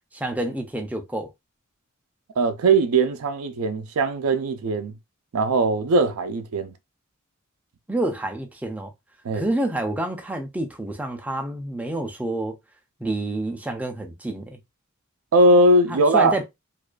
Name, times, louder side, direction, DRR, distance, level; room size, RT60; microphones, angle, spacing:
voice 1, 0.1-1.3 7.9-8.9 9.3-12.6 13.0-14.6 15.9-16.4, right 1 dB, 5° right, 0.4 m, -28 dB
voice 2, 2.4-5.0 5.3-6.8 9.2-9.5 15.3-16.3, right 2 dB, 85° right, 0.4 m, -20 dB
2.4 x 2.3 x 2.2 m
head